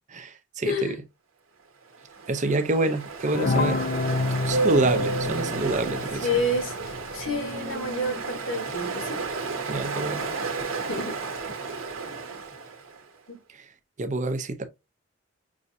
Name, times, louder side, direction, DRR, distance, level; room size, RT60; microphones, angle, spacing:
voice 1, 0.1-1.0 2.3-3.8 4.4-6.3 9.7-10.3 13.5-13.7 14.0-14.6, right 2 dB, 35° right, 0.6 m, -27 dB
voice 2, 0.7-1.0 6.2-6.7 7.1-9.2 10.9-11.2 13.3-13.4, left 1 dB, 75° left, 1.3 m, -29 dB
Ocean, 1.9-13.0, right 4 dB, 85° right, 1.3 m, -32 dB
sound 1, 3.3-8.0, left 3 dB, 50° left, 0.5 m, -29 dB
6.1 x 2.7 x 2.6 m
head